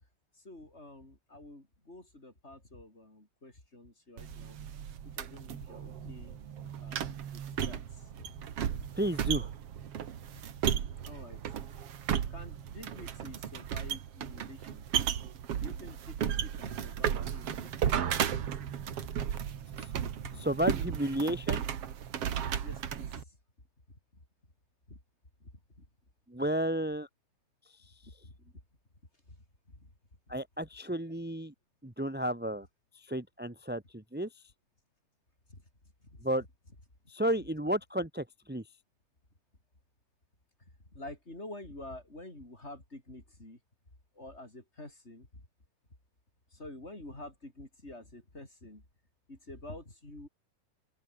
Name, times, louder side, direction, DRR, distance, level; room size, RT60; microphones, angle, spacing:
voice 1, 0.3-4.6 5.0-6.4 6.8-8.3 8.6-8.9 10.3-10.4 11.0-11.4 12.3-14.9 15.6-18.3 19.0-19.1 20.0-20.4 20.9-21.0 22.6-23.4 24.9-25.0 25.4-25.5 25.8-25.9 28.0-28.3 29.3-29.4 29.7-29.9 30.3-30.4 35.5-35.6 36.1-36.2 40.9-43.6 44.1-45.4 46.5-48.8 49.3-50.3, left 1 dB, 20° left, 6.2 m, -48 dB
sound 1, 4.2-23.2, right 9 dB, 55° right, 2.5 m, -35 dB
voice 2, 8.9-9.5 19.8-19.9 20.4-21.6 26.3-27.1 30.3-31.5 31.8-32.7 32.9-34.3 36.2-36.4 37.1-38.6, right 1 dB, 5° right, 1.0 m, -32 dB
open air
omnidirectional pair, 3.4 m